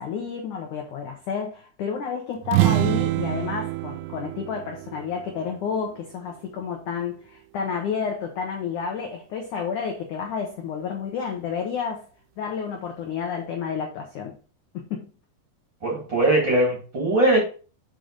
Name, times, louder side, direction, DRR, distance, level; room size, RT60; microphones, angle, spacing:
voice 1, 0.0-12.1 12.4-14.3 14.7-15.0, left 6 dB, 80° left, 2 dB, 1.7 m, -30 dB
sound 1, 2.4-6.2, right 18 dB, 90° right, 2.9 m, -26 dB
voice 2, 15.8-17.4, right 1 dB, 35° right, -2 dB, 2.1 m, -20 dB
6.6 x 5.8 x 3.8 m, 0.36 s
omnidirectional pair, 5.1 m